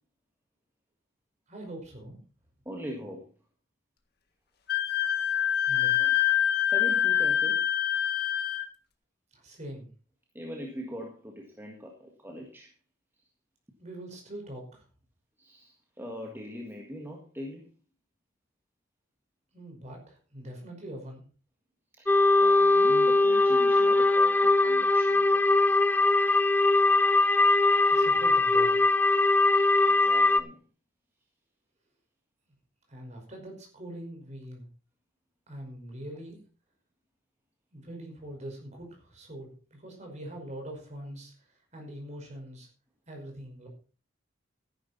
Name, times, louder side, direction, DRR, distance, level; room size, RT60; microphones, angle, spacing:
voice 1, 1.5-2.2 5.7-6.1 9.3-9.9 13.8-14.9 19.5-21.3 27.9-28.8 32.9-34.7 35.5-36.4 37.7-42.7 43.1-43.7, right 1 dB, 35° right, 2 dB, 5.4 m, -43 dB
voice 2, 2.7-3.3 6.7-7.8 10.3-12.7 15.4-17.7 22.0-22.1 22.4-25.5 29.5-30.6, equal, 10° right, 0 dB, 1.9 m, -41 dB
Wind instrument woodwind instrument, 4.7-8.7, left 11 dB, 55° left, 1.8 m, -25 dB
sound 1, 22.1-30.4, left 2 dB, 10° left, 0.6 m, -21 dB
13.5 x 11.0 x 4.3 m, 0.36 s
head